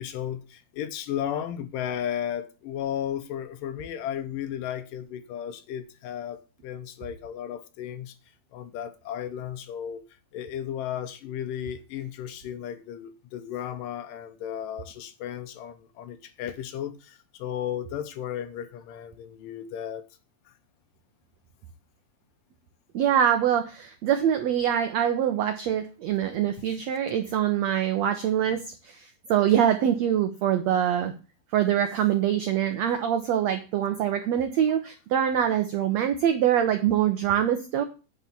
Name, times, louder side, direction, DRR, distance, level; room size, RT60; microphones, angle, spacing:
voice 1, 0.0-8.2 8.5-10.0 10.3-20.1 20.5-20.6 28.5-28.6, left 10 dB, 75° left, 2.3 m, -34 dB
voice 2, 22.9-31.1 31.5-37.8, right 10 dB, 85° right, 1.5 m, -24 dB
9.7 x 4.8 x 7.1 m
omnidirectional pair, 4.2 m